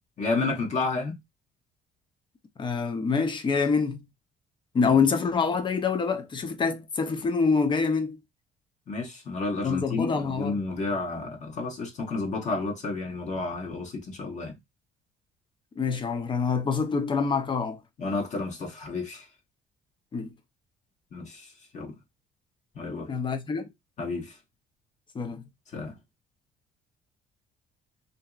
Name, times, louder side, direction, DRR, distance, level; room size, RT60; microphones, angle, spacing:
voice 1, 0.2-1.2 4.8-5.0 8.9-14.6 18.0-19.3 21.1-22.0 22.7-23.1 24.0-24.4 25.7-26.0, left 3 dB, 45° left, 1.0 m, -31 dB
voice 2, 2.6-4.1 4.7-8.2 9.6-10.6 15.8-17.8 20.1-20.3 23.0-23.7 25.1-25.4, left 5 dB, 30° left, 0.5 m, -26 dB
2.8 x 2.6 x 2.4 m
cardioid pair, 110°, 17 cm